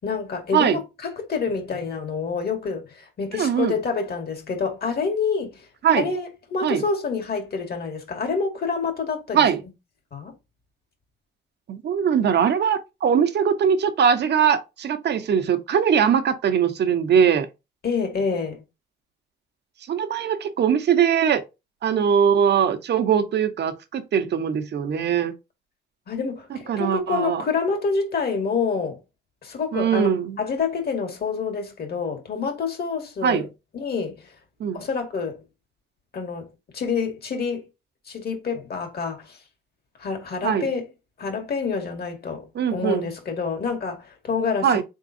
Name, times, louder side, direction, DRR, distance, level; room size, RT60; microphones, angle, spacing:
voice 1, 0.0-5.7 6.0-9.5 10.1-10.3 17.8-18.6 26.1-29.0 29.4-30.1 30.4-33.5 33.7-34.3 34.7-35.4 36.1-37.6 38.1-39.4 40.0-40.9 41.2-44.8, left 5 dB, 50° left, 1.9 m, -27 dB
voice 2, 3.3-3.8 5.8-6.1 6.6-6.8 9.3-9.6 11.7-17.5 19.9-21.4 21.8-25.3 26.7-27.4 29.7-30.4 33.2-33.5 34.6-34.8 40.4-40.7 42.5-43.1 44.6-44.8, right 7 dB, 60° right, 0.9 m, -21 dB
4.0 x 3.7 x 2.7 m
cardioid pair, 90°, 20 cm